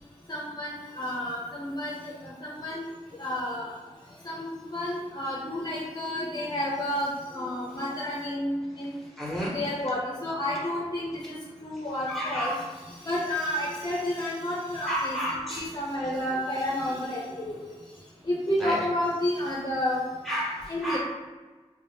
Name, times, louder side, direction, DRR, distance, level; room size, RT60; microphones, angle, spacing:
voice 1, 0.3-2.9 3.2-3.7 4.2-8.9 9.5-11.3 11.6-12.5 13.0-15.2 15.5-17.7 18.3-20.0 20.7-21.0, left 1 dB, 35° left, -5 dB, 0.6 m, -30 dB
voice 2, 9.2-9.5 12.1-12.6 14.8-15.7 18.6-18.9 20.2-21.0, equal, ahead, -6 dB, 1.1 m, -31 dB
2.5 x 2.2 x 3.4 m, 1.3 s
wide cardioid pair, 45°, 12 cm